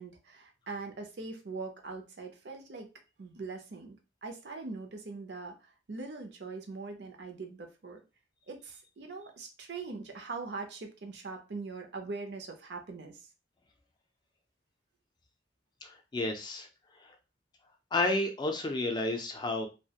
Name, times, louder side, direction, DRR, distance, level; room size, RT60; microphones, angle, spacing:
voice 1, 0.0-2.9 3.2-8.0 8.5-13.2, right 3 dB, 65° right, 4 dB, 0.5 m, -42 dB
voice 2, 15.8-16.7 17.9-19.7, left 2 dB, 25° left, 3 dB, 0.4 m, -31 dB
2.3 x 2.1 x 2.8 m, 0.30 s
head